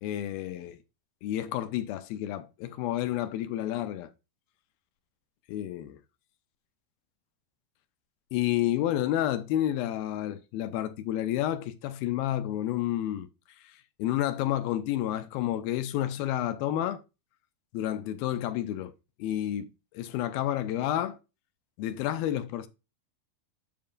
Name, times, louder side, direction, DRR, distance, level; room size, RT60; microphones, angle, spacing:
voice 1, 0.0-0.8 1.2-4.1 5.5-6.0 8.3-13.3 13.6-17.0 17.7-18.9 19.2-21.2 21.8-22.7, left 12 dB, 80° left, 2.3 m, -30 dB
7.7 x 7.2 x 2.4 m
omnidirectional pair, 4.4 m